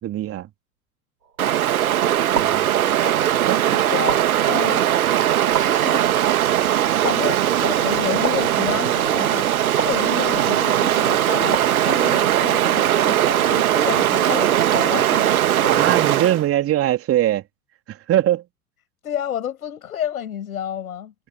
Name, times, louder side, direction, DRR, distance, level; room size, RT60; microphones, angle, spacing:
voice 1, 0.0-0.5 2.3-2.7 3.4-3.6 15.7-17.4 17.9-18.4, right 13 dB, 30° right, 3.3 m, -21 dB
sound 1, 1.2-1.7 2.3-3.3 4.1-4.9 5.5-6.4 7.0-7.7 8.2-9.1 9.8-10.7 11.5-12.5 13.3-13.9, right 5 dB, 80° right, 4.1 m, -33 dB
Stream, 1.4-16.4, right 11 dB, 65° right, 1.9 m, -19 dB
voice 2, 3.0-4.8 5.4-6.4 7.0-9.5 9.8-15.3 15.6-15.9 19.0-21.1, left 10 dB, 65° left, 5.9 m, -30 dB
figure-of-eight pair, 90°, 47 cm